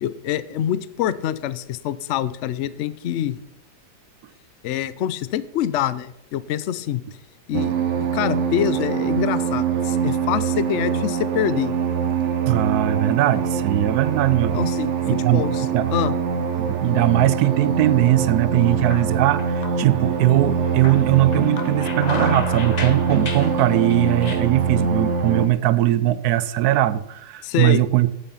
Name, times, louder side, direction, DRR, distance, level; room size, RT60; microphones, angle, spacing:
voice 1, 0.0-3.4 4.6-7.0 7.5-7.7 8.1-11.7 14.5-15.0 15.3-16.1 27.4-27.8, left 11 dB, 65° left, 16 dB, 0.7 m, -25 dB
sound 1, 7.5-25.5, right 6 dB, 55° right, 0.9 m, -23 dB
sound 2, 9.0-9.3 9.7-10.3 10.7-11.3 11.6-11.7 12.6-13.7 14.1-15.1 15.5-15.6 16.5-17.1 17.4-17.6 18.0-20.3 20.6-24.4, left 4 dB, 35° left, 0.8 m, -35 dB
voice 2, 12.5-14.7 15.0-15.9 16.6-28.1, right 14 dB, 75° right, 16 dB, 1.1 m, -20 dB
8.9 x 8.6 x 5.7 m, 0.80 s
omnidirectional pair, 1.7 m